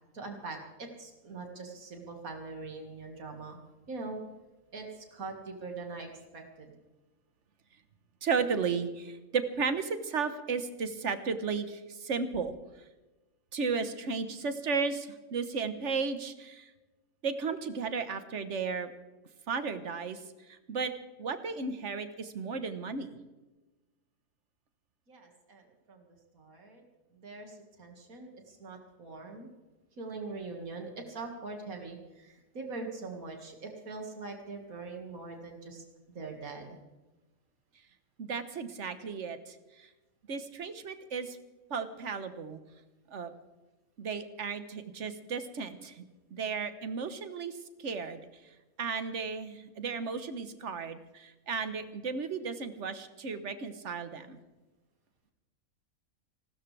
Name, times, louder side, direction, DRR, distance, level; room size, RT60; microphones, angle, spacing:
voice 1, 0.1-3.6 3.9-4.2 4.7-6.7 25.1-25.6 25.9-26.1 26.3-26.8 27.1-29.5 30.0-35.8 36.1-36.8, right 3 dB, 90° right, 2 dB, 2.5 m, -42 dB
voice 2, 8.2-12.5 13.5-16.7 17.2-18.9 19.5-20.2 20.5-20.9 21.2-23.2 38.2-39.9 40.3-41.4 41.7-42.6 43.1-43.3 44.0-46.0 46.3-48.2 48.8-54.4, right 5 dB, 60° right, 10 dB, 1.5 m, -34 dB
29.5 x 13.0 x 3.4 m, 1.1 s
omnidirectional pair, 1.4 m